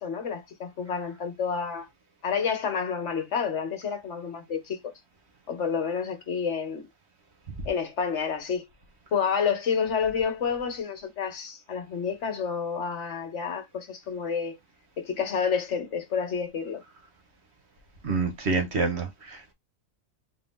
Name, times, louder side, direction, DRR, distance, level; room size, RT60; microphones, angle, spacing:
voice 1, 0.0-1.9 2.2-4.8 5.5-6.8 7.7-8.7 9.1-14.6 15.0-16.8, left 6 dB, 60° left, 1.2 m, -29 dB
voice 2, 18.0-19.5, right 4 dB, 55° right, 1.2 m, -27 dB
3.8 x 2.7 x 3.5 m
omnidirectional pair, 1.4 m